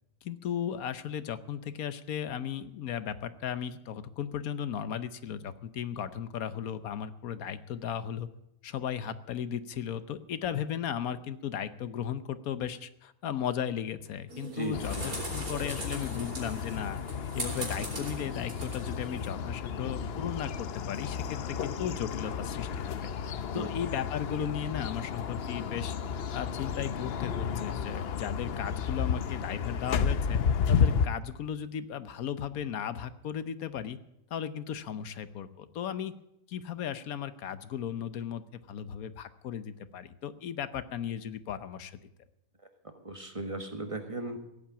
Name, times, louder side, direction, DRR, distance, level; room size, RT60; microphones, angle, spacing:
voice 1, 0.2-8.3 8.6-17.0 17.3-23.1 23.5-30.4 30.7-34.0 34.3-36.1 36.5-42.0, left 9 dB, 80° left, 13 dB, 1.3 m, -36 dB
sound 1, 14.3-19.3, right 2 dB, 80° right, 4.3 m, -41 dB
voice 2, 14.5-15.1 23.5-23.7 42.8-44.4, right 2 dB, 25° right, 6 dB, 1.4 m, -37 dB
sound 2, 14.7-31.1, left 7 dB, 55° left, 0.8 m, -32 dB
16.0 x 8.8 x 8.6 m, 0.83 s
omnidirectional pair, 1.5 m